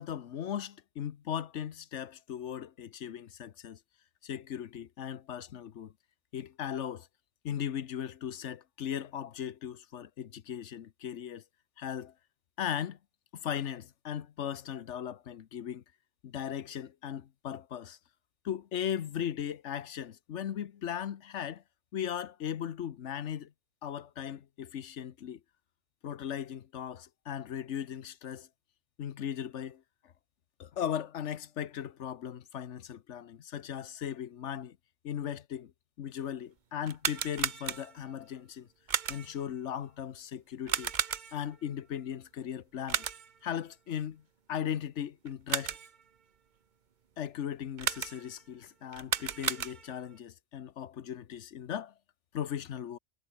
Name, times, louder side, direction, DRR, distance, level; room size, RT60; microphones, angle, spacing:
voice 1, 0.0-3.8 4.2-5.9 6.3-7.1 7.4-11.4 11.8-12.1 12.6-13.0 13.3-15.8 16.2-18.0 18.4-21.6 21.9-23.5 23.8-25.4 26.0-28.5 29.0-29.8 30.6-34.8 35.0-35.7 36.0-38.7 39.1-40.9 41.3-43.0 43.4-44.2 44.5-45.8 47.2-51.9 52.3-53.0, left 9 dB, 80° left, 1.2 m, -37 dB
sound 1, 36.8-38.1 38.9-39.5 40.7-41.6 42.9-43.4 45.3-46.0 47.8-48.4 48.9-50.1, right 7 dB, 45° right, 0.9 m, -34 dB
omnidirectional pair, 1.2 m